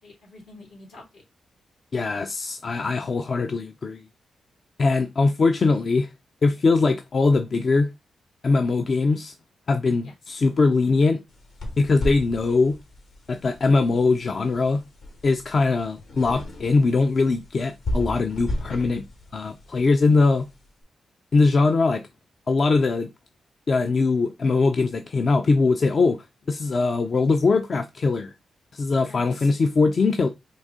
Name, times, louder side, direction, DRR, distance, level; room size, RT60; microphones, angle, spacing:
voice 1, 0.0-1.2 10.0-10.3 29.0-29.5, left 2 dB, 90° left, 2.4 m, -47 dB
voice 2, 1.9-4.0 4.8-6.1 6.4-7.9 8.4-9.3 9.7-11.2 11.8-12.8 13.3-14.8 15.2-19.0 19.3-20.5 21.3-22.0 22.5-23.1 23.7-26.2 26.5-28.3 28.7-30.3, left 3 dB, 55° left, 0.5 m, -21 dB
sound 1, 11.3-20.7, left 1 dB, 75° left, 1.3 m, -35 dB
3.9 x 2.7 x 3.6 m
supercardioid pair, 45°, 0 cm